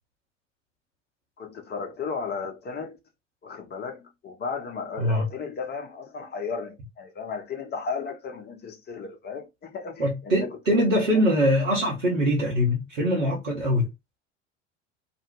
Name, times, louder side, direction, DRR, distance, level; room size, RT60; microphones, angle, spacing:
voice 1, 1.4-3.0 3.4-10.8, left 5 dB, 25° left, 0.8 m, -35 dB
voice 2, 10.0-13.9, equal, 80° right, 0.8 m, -23 dB
2.5 x 2.0 x 3.0 m
figure-of-eight pair, 70°, 38 cm